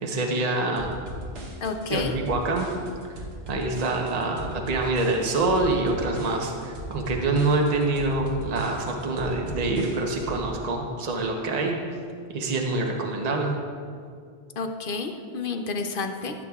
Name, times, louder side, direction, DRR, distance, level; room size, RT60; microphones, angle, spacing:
voice 1, 0.0-0.9 1.9-2.7 3.5-11.8 12.3-13.5, right 2 dB, 40° right, 1 dB, 0.9 m, -26 dB
sound 1, 0.8-10.4, equal, 70° right, 1.4 m, -38 dB
voice 2, 1.6-2.1 14.6-16.3, left 4 dB, 60° left, 5 dB, 0.8 m, -30 dB
15.0 x 8.4 x 2.4 m, 2.2 s
omnidirectional pair, 1.1 m